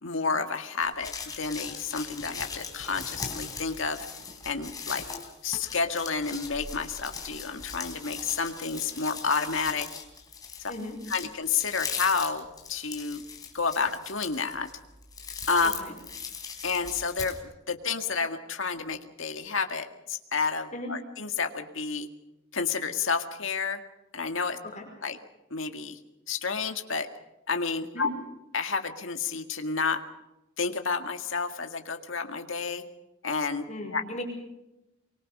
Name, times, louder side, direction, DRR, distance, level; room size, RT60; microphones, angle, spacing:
voice 1, 0.0-4.1 4.4-5.0 5.4-9.9 10.6-10.7 11.1-13.2 13.5-14.7 15.5-15.7 16.6-17.4 17.7-22.1 22.5-23.8 24.1-24.6 25.0-25.2 25.5-26.0 26.3-27.1 27.5-28.1 28.5-30.0 30.6-32.8 33.2-33.6 33.9-34.0, left 5 dB, 70° left, 6 dB, 2.0 m, -30 dB
sound 1, 0.8-17.4, left 5 dB, 20° left, 3.8 m, -39 dB
voice 2, 33.7-34.2, left 1 dB, 35° left, 2 dB, 5.1 m, -37 dB
24.0 x 24.0 x 5.5 m, 0.93 s
head